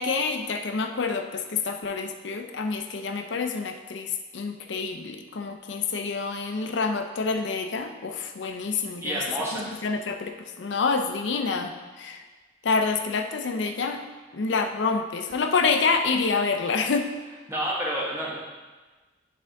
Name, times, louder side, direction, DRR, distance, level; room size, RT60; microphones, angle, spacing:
voice 1, 0.0-9.2 9.5-12.2 12.6-14.0 14.3-17.1, left 4 dB, 75° left, 6 dB, 0.5 m, -27 dB
voice 2, 9.0-9.6 17.5-18.4, right 1 dB, 15° right, -5 dB, 1.1 m, -29 dB
10.0 x 3.5 x 3.4 m, 1.3 s
head